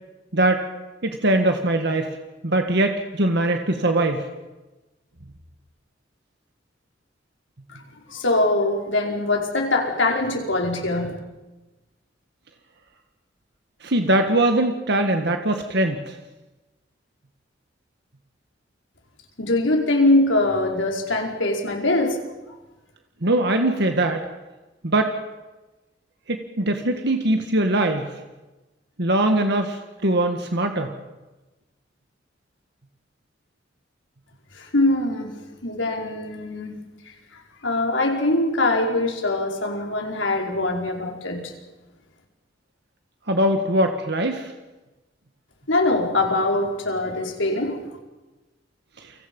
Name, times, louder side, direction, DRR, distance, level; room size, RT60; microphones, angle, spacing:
voice 1, 0.3-0.7 1.0-2.1 2.4-4.3 13.8-16.2 23.2-24.3 24.8-25.2 26.3-28.1 29.0-30.9 43.3-44.5 49.0-49.1, right 1 dB, 65° right, 5 dB, 1.8 m, -21 dB
voice 2, 8.1-11.2 19.4-22.2 22.5-22.6 34.5-35.3 35.6-36.8 37.3-41.5 45.7-47.9, left 2 dB, 85° left, 2 dB, 4.8 m, -23 dB
29.5 x 25.5 x 5.5 m, 1.1 s
head